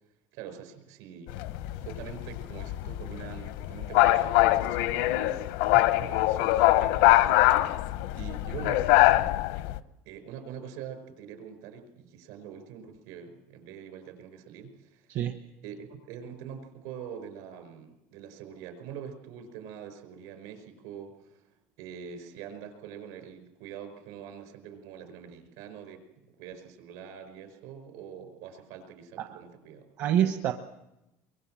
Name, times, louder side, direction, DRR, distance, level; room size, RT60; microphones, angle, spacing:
voice 1, 0.3-1.3 1.8-5.4 6.0-7.9 8.1-9.3 10.0-15.2 15.6-26.0 26.4-29.9, right 8 dB, 70° right, 8 dB, 5.1 m, -44 dB
sound 1, 1.3-9.8, left 17 dB, 75° left, 0.8 m, -23 dB
voice 2, 30.0-30.5, right 10 dB, 45° right, 6 dB, 1.0 m, -27 dB
25.0 x 23.0 x 7.6 m, 0.94 s
cardioid pair, 175°, 6 cm